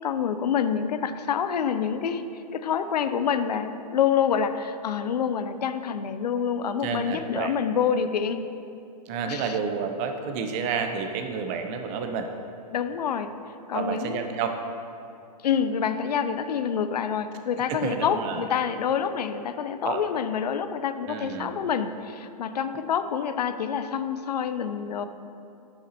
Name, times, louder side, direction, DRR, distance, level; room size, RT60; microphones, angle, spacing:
voice 1, 0.0-2.3 2.5-8.4 9.3-9.6 12.7-13.3 13.7-14.3 15.4-25.1, left 7 dB, 70° left, 11 dB, 0.5 m, -27 dB
voice 2, 6.8-7.6 9.1-12.3 13.7-14.6 17.7-18.4 19.8-20.0 21.0-21.5, right 6 dB, 30° right, 6 dB, 0.7 m, -30 dB
8.5 x 8.1 x 2.9 m, 2.8 s
hypercardioid pair, 125°, 21 cm